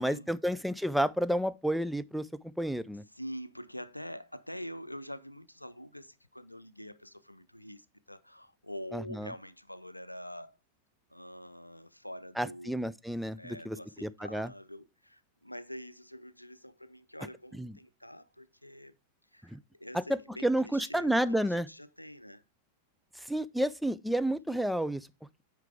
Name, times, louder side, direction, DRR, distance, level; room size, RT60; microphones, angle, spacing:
voice 1, 0.0-2.3 2.6-3.0 8.9-9.3 12.4-13.8 14.0-14.5 17.6-17.7 19.5-19.6 19.9-21.7 23.3-25.1, right 1 dB, ahead, 0.4 m, -30 dB
voice 2, 3.1-10.6 11.1-12.9 13.4-18.9 19.3-22.4 24.3-24.7, equal, 90° left, 0.5 m, -45 dB
9.1 x 4.7 x 3.4 m
figure-of-eight pair, 90°, 0 cm